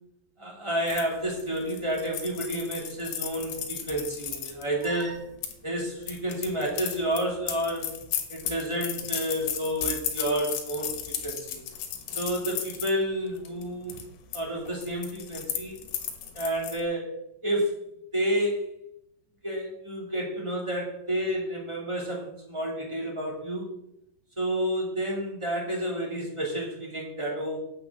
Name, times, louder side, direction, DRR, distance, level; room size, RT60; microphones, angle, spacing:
voice 1, 0.4-5.2 5.6-7.9 8.3-10.9 11.2-11.6 12.1-13.9 14.3-15.8 16.3-17.1 17.4-17.7 18.1-18.6 19.4-23.7 24.4-27.6, right 1 dB, 10° right, -2 dB, 1.3 m, -30 dB
sound 1, 0.9-5.5 6.0-12.9 13.4-13.6 13.9-14.4 14.7-16.8, left 9 dB, 75° left, 3.3 m, -35 dB
9.2 x 6.1 x 7.4 m, 0.79 s
omnidirectional pair, 5.3 m